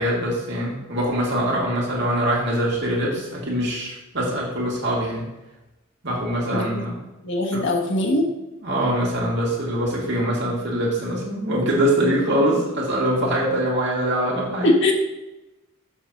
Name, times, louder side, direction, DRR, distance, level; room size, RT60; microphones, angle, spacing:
voice 1, 0.0-5.2 6.0-7.0 7.5-7.6 8.6-14.7, right 1 dB, 55° right, -4 dB, 2.5 m, -23 dB
voice 2, 7.2-8.3 14.6-14.9, left 1 dB, 55° left, 0 dB, 1.3 m, -20 dB
7.4 x 4.4 x 6.5 m, 1.0 s
head